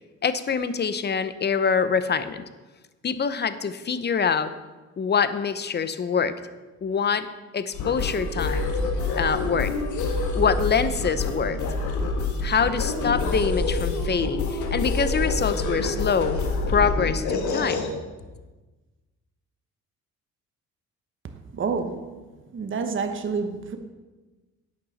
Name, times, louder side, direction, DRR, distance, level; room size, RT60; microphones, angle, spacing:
voice 1, 0.2-2.4 3.0-4.5 5.0-6.4 6.8-7.3 7.5-8.7 9.2-9.7 10.3-11.6 12.4-16.4 16.7-17.9, left 6 dB, 35° left, 12 dB, 0.7 m, -25 dB
sound 1, 7.7-17.9, left 3 dB, 75° left, 1.7 m, -27 dB
voice 2, 21.5-22.1 22.5-23.8, right 5 dB, 40° right, 6 dB, 1.1 m, -28 dB
11.5 x 8.5 x 4.2 m, 1.2 s
cardioid pair, 90°, 30 cm